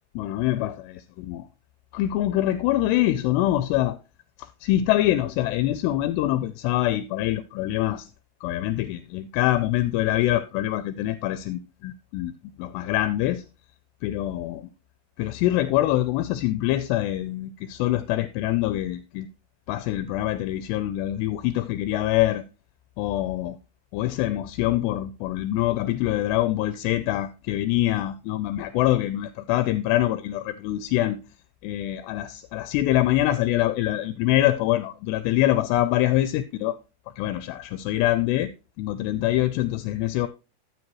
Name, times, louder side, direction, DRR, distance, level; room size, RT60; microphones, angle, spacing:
voice 1, 0.2-0.7 1.2-1.5 1.9-4.0 4.4-8.1 8.4-12.3 12.6-13.5 14.0-14.7 15.2-19.3 19.7-22.4 23.0-23.6 23.9-31.2 31.6-36.8 37.2-38.5 38.8-40.3, left 14 dB, 80° left, 2.6 m, -24 dB
12.5 x 7.7 x 3.0 m
omnidirectional pair, 5.0 m